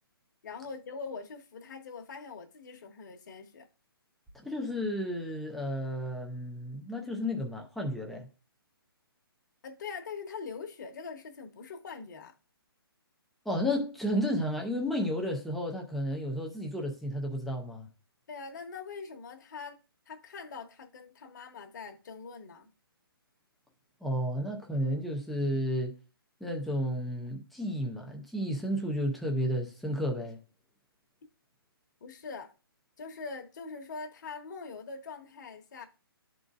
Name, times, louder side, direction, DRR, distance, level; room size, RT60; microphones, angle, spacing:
voice 1, 0.4-3.7 9.6-12.4 18.3-19.8 20.1-22.7 32.0-32.5 33.0-35.9, left 5 dB, 50° left, 1.0 m, -43 dB
voice 2, 4.4-8.3 13.5-17.9 24.0-25.9 26.4-30.4, equal, ahead, 0.3 m, -32 dB
10.5 x 3.9 x 2.4 m
hypercardioid pair, 165°, 13 cm